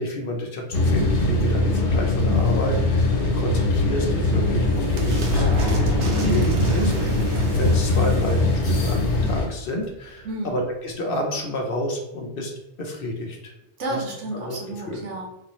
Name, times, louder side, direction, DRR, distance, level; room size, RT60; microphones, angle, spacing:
voice 1, 0.0-6.4 6.7-6.9 7.4-12.5 12.8-13.5 13.9-14.0 14.4-14.6 14.9-15.0, left 1 dB, 55° left, 1 dB, 0.8 m, -30 dB
sound 1, 0.7-9.5, left 2 dB, 85° left, 1.2 m, -21 dB
sound 2, 3.9-10.3, right 1 dB, 65° right, 0.9 m, -30 dB
voice 2, 6.2-7.2 10.2-10.6 13.8-15.3, right 1 dB, 85° right, -2 dB, 1.3 m, -31 dB
4.0 x 2.6 x 3.0 m, 0.88 s
omnidirectional pair, 1.2 m